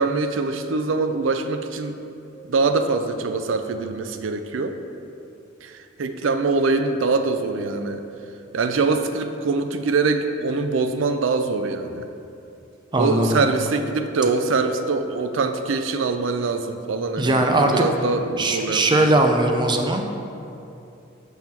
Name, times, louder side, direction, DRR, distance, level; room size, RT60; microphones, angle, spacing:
voice 1, 0.0-2.0 2.5-4.7 5.6-8.0 8.5-12.0 13.0-19.2, right 3 dB, 75° right, 8 dB, 0.5 m, -23 dB
voice 2, 12.9-13.4 17.2-17.8 18.3-20.0, right 2 dB, 25° right, 4 dB, 0.5 m, -19 dB
5.4 x 4.4 x 6.0 m, 2.7 s
head